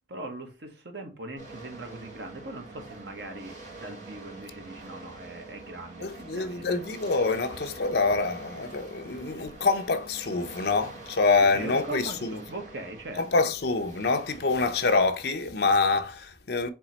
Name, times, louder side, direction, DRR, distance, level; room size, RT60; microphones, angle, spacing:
voice 1, 0.1-6.8 11.3-13.5, right 2 dB, 70° right, 1.1 m, -40 dB
sound 1, 1.4-15.1, right 2 dB, 40° right, 1.5 m, -46 dB
voice 2, 6.0-12.4 13.2-16.7, left 3 dB, 60° left, 0.6 m, -26 dB
4.6 x 2.9 x 4.0 m
head